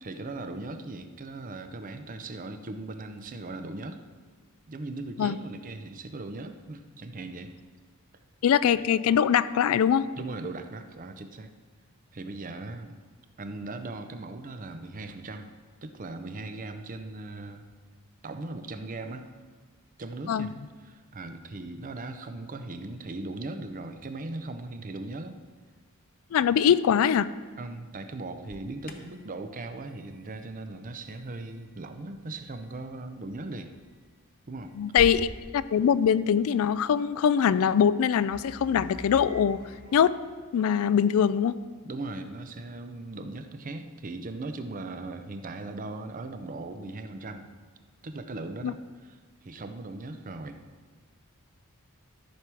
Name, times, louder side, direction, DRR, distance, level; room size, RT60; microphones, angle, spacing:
voice 1, 0.0-4.0 4.7-7.5 10.2-11.5 12.1-13.0 13.4-15.5 15.8-17.7 18.2-19.3 20.0-20.6 20.8-25.4 27.6-33.7 34.5-34.7 41.8-47.5 48.0-49.2 49.4-50.6, right 2 dB, 35° right, 8 dB, 0.6 m, -38 dB
voice 2, 8.4-10.0 20.3-20.5 26.3-27.3 34.8-39.6 39.9-40.1 40.5-41.6 48.6-48.7, left 8 dB, 65° left, 16 dB, 0.3 m, -23 dB
Alarm, 28.4-35.3, left 1 dB, 40° left, 0.8 m, -47 dB
sound 1, 38.3-40.7, right 1 dB, 60° right, 2.8 m, -46 dB
13.0 x 6.1 x 4.7 m, 1.5 s
head